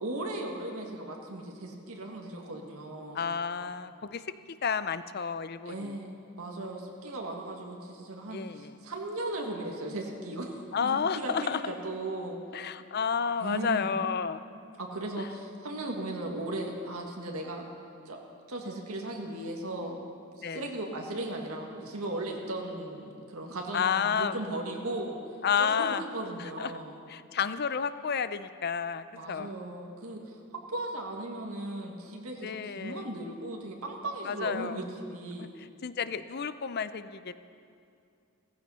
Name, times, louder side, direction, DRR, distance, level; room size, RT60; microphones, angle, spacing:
voice 1, 0.0-3.3 5.7-6.1 6.4-12.4 13.4-13.9 14.8-17.6 18.1-18.2 18.5-20.1 20.4-25.2 25.6-27.0 29.2-35.5, right 1 dB, 80° right, 1 dB, 1.8 m, -37 dB
voice 2, 3.1-4.2 4.6-6.0 8.3-8.7 10.7-11.6 12.5-14.4 20.4-20.7 23.7-24.4 25.4-26.0 26.6-29.5 32.4-33.1 34.3-34.8 35.6-37.3, left 6 dB, 45° left, 13 dB, 0.5 m, -31 dB
16.5 x 14.5 x 5.6 m, 2.5 s
head